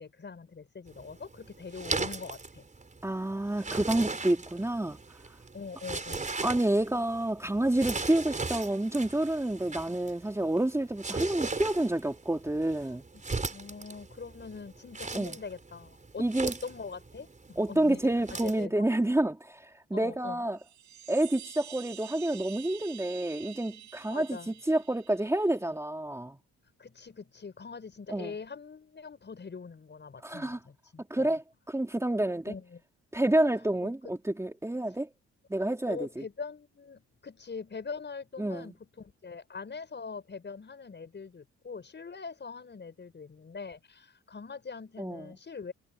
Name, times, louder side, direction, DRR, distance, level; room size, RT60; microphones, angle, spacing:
voice 1, 0.0-2.7 5.5-6.3 12.8-12.9 13.3-18.8 19.9-20.4 24.1-24.6 26.8-31.4 32.5-32.8 33.8-34.1 35.8-45.7, left 5 dB, 35° left, 6.9 m, -43 dB
sound 1, 0.9-18.6, right 3 dB, 25° right, 4.9 m, -39 dB
voice 2, 3.0-5.0 6.4-13.0 15.1-15.4 16.2-16.5 17.6-20.6 21.1-26.4 28.1-28.3 30.2-30.6 31.1-31.4 31.7-32.5 33.1-35.1 35.5-36.2 38.4-38.7 45.0-45.3, right 1 dB, 10° right, 3.6 m, -29 dB
sound 2, 20.5-25.6, right 10 dB, 70° right, 5.7 m, -48 dB
cardioid pair, 90°, 30 cm